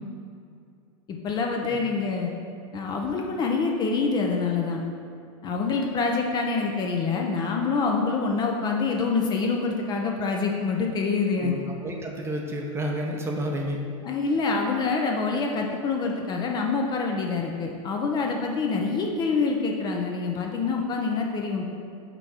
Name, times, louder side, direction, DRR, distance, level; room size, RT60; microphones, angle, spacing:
voice 1, 1.1-2.3 2.7-4.8 5.4-11.6 14.0-21.6, left 4 dB, 25° left, 1 dB, 0.5 m, -26 dB
voice 2, 11.3-13.8, equal, 15° right, 1 dB, 0.7 m, -30 dB
6.0 x 3.4 x 5.6 m, 2.4 s
supercardioid pair, 135°, 17 cm